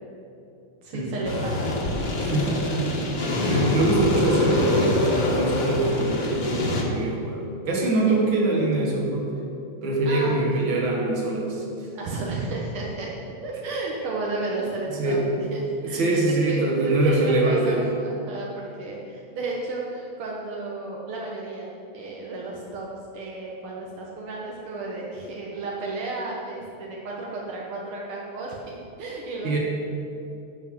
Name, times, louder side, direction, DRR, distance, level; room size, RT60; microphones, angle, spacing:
voice 1, 0.8-1.8 8.1-8.3 10.1-10.7 12.0-13.1 13.4-22.9 23.1-29.6, right 2 dB, 85° right, -3 dB, 2.1 m, -33 dB
sound 1, 1.2-6.8, left 1 dB, 55° left, 1.9 m, -25 dB
voice 2, 2.2-2.6 3.5-9.3 9.8-11.6 15.0-15.2 15.8-17.8 29.4-29.6, right 2 dB, 65° right, -2 dB, 2.5 m, -23 dB
11.0 x 5.7 x 7.6 m, 2.6 s
omnidirectional pair, 2.3 m